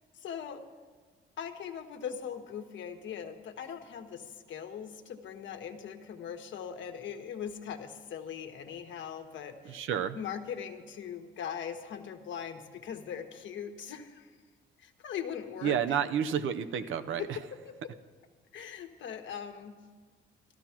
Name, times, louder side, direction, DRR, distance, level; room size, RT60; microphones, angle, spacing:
voice 1, 0.1-0.6 1.4-9.9 10.1-14.3 14.8-16.0 17.2-17.3 17.6-17.9 18.5-19.8, left 8 dB, 70° left, 5 dB, 1.3 m, -40 dB
voice 2, 9.6-10.2 15.6-17.4, right 8 dB, 80° right, 10 dB, 0.7 m, -30 dB
13.5 x 12.5 x 5.9 m, 1.5 s
cardioid pair, 90°, 20 cm